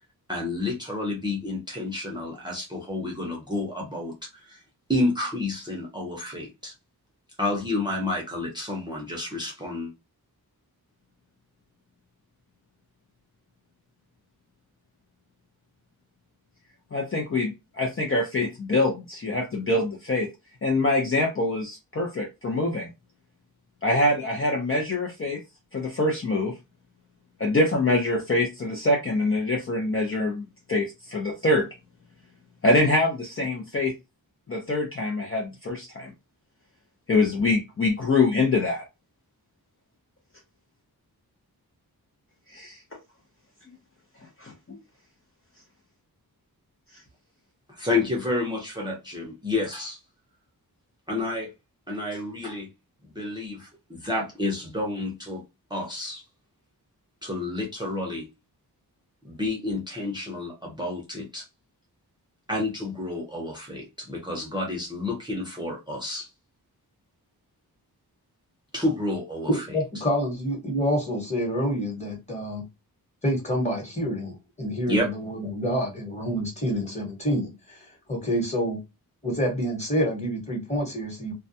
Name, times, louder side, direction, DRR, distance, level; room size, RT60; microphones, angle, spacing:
voice 1, 0.3-4.6 4.9-6.7 7.4-9.9 47.7-50.0 51.1-51.5 51.9-52.7 53.0-55.4 55.7-56.2 57.2-58.3 59.2-61.4 62.5-66.3 68.7-69.7 74.9-75.1, left 2 dB, 10° right, 0.7 m, -30 dB
voice 2, 16.9-20.3 20.6-22.9 23.8-25.4 25.7-26.5 27.4-30.4 30.7-31.7 32.6-33.9 34.5-36.1 37.1-38.8 42.5-42.8 44.4-44.8, left 2 dB, 35° left, 0.6 m, -24 dB
voice 3, 69.5-72.6 73.2-78.8 79.2-81.3, equal, 15° left, 1.2 m, -27 dB
2.3 x 2.1 x 2.6 m
wide cardioid pair, 115°, 38 cm